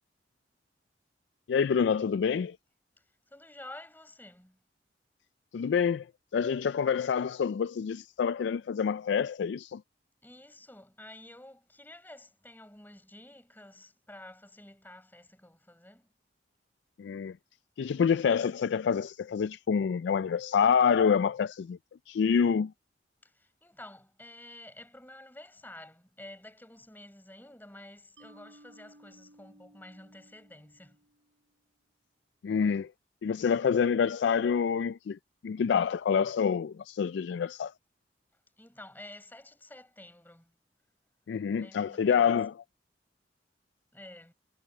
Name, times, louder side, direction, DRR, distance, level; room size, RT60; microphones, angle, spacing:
voice 1, 1.5-2.6 5.5-6.1 6.3-9.8 17.0-17.4 17.8-21.8 22.1-22.7 32.4-32.9 33.2-35.2 35.4-37.7 41.3-42.5, left 6 dB, 75° left, 0.3 m, -27 dB
voice 2, 3.0-4.6 10.2-16.1 23.2-31.0 38.6-40.5 41.6-42.4 43.9-44.3, left 1 dB, 10° left, 4.8 m, -50 dB
Mallet percussion, 28.2-31.4, right 1 dB, 80° right, 6.9 m, -58 dB
head